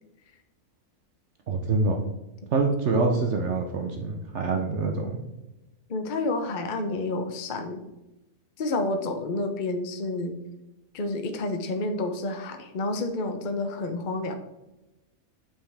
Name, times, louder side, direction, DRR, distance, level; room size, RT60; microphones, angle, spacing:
voice 1, 1.5-2.0 2.5-5.2, right 3 dB, 60° right, 3 dB, 1.0 m, -25 dB
voice 2, 5.9-7.8 8.6-10.4 10.9-14.3, left 2 dB, 45° left, 6 dB, 0.7 m, -29 dB
7.1 x 5.6 x 3.4 m, 0.99 s
omnidirectional pair, 1.5 m